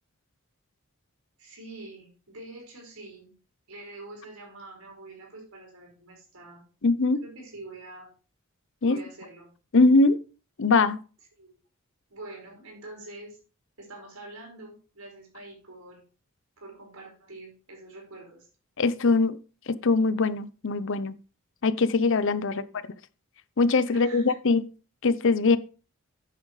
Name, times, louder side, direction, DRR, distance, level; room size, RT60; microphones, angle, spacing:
voice 1, 1.4-3.3 3.7-6.6 7.2-8.1 8.8-9.5 11.4-11.6 12.1-13.4 13.8-16.0 16.6-18.5 22.5-22.7 23.9-24.3, right 2 dB, 90° right, 5.4 m, -45 dB
voice 2, 6.8-7.2 8.8-9.0 9.7-10.2 10.6-11.0 18.8-19.4 19.7-21.2 21.6-22.6 23.6-24.7 25.0-25.6, left 3 dB, 60° left, 0.7 m, -22 dB
10.0 x 9.1 x 3.3 m
head